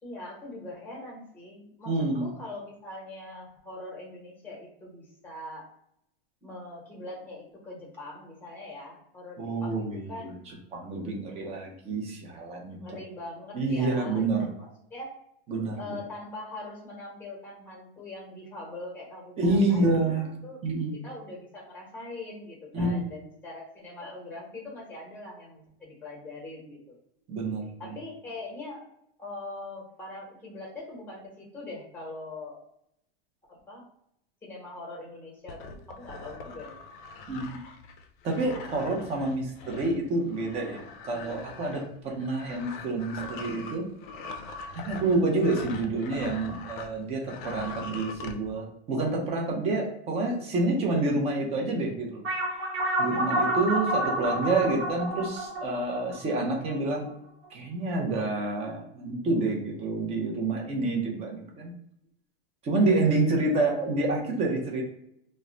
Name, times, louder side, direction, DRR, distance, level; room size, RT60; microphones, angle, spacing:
voice 1, 0.0-5.7 6.4-10.5 12.8-14.3 14.6-15.1 15.8-20.6 21.0-27.0 27.8-28.9 29.2-32.6 33.5-33.9 34.4-36.8 53.5-53.9 63.3-63.5, left 2 dB, 5° left, -3 dB, 0.9 m, -42 dB
voice 2, 1.9-2.3 9.4-10.3 10.7-12.8 13.5-14.5 15.5-15.8 19.4-20.4 20.6-21.0 22.7-23.0 27.3-27.7 37.3-37.6 38.2-43.9 44.7-52.2 53.0-57.1 57.5-61.7 62.6-64.8, right 2 dB, 20° right, 0 dB, 0.5 m, -28 dB
sound 1, 35.5-46.9 47.2-48.4, left 4 dB, 55° left, 0.4 m, -42 dB
sound 2, 52.2-57.1, right 1 dB, 60° right, 1.1 m, -29 dB
2.2 x 2.1 x 3.7 m, 0.75 s
supercardioid pair, 150°, 30 cm